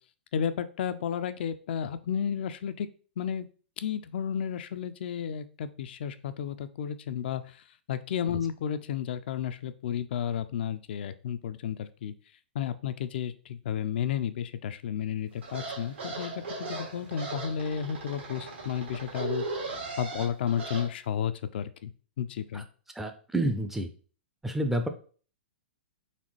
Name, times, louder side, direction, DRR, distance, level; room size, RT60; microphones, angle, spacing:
voice 1, 0.3-2.9 3.2-3.5 3.8-12.1 12.5-21.9 22.2-22.7, left 8 dB, 60° left, 11 dB, 0.4 m, -32 dB
sound 1, 15.4-20.9, right 3 dB, 80° right, 1.7 m, -37 dB
voice 2, 22.9-23.9 24.4-24.9, right 1 dB, 5° right, 6 dB, 0.4 m, -29 dB
4.1 x 3.4 x 3.1 m, 0.40 s
hypercardioid pair, 120°, 6 cm